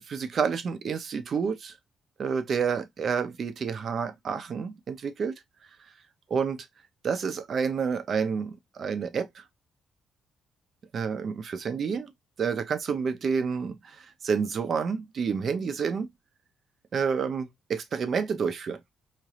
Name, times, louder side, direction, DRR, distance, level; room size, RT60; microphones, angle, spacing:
voice 1, 0.1-1.8 2.2-5.4 6.3-6.7 7.0-9.4 10.9-12.1 12.4-16.1 16.9-18.8, right 6 dB, 55° right, 0.8 m, -29 dB
4.4 x 3.2 x 2.4 m
cardioid pair, 90°, 0 cm